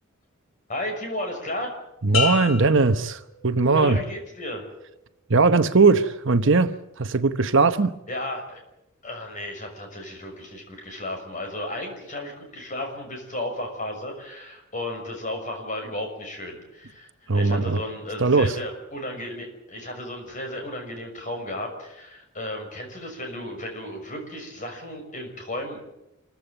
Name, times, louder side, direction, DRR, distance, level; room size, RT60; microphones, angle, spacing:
voice 1, 0.7-1.7 3.7-4.6 8.1-8.6 9.0-17.1 17.3-25.8, left 1 dB, 35° left, 6.4 m, -34 dB
voice 2, 2.0-4.0 5.3-8.0 17.3-17.8 18.2-18.6, right 3 dB, 55° right, 1.0 m, -19 dB
sound 1, 2.1-3.9 4.4-4.9, left 7 dB, 70° left, 5.4 m, -31 dB
26.5 x 15.0 x 8.9 m
head